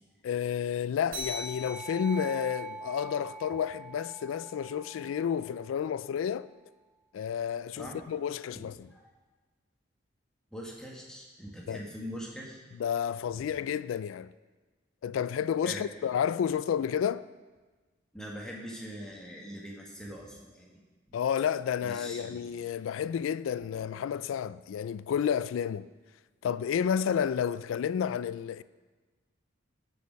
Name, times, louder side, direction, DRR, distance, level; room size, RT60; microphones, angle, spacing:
voice 1, 0.2-6.5 7.1-8.9 11.7-11.8 12.8-14.3 15.0-17.2 21.1-25.9 26.4-28.6, left 8 dB, 90° left, 0.3 m, -31 dB
sound 1, 1.1-6.0, right 1 dB, 50° right, 3.4 m, -42 dB
voice 2, 8.5-9.1 10.5-12.6 13.3-13.4 15.6-15.8 18.1-20.8 21.8-22.5, equal, 5° left, 1.6 m, -42 dB
13.5 x 6.4 x 5.2 m
head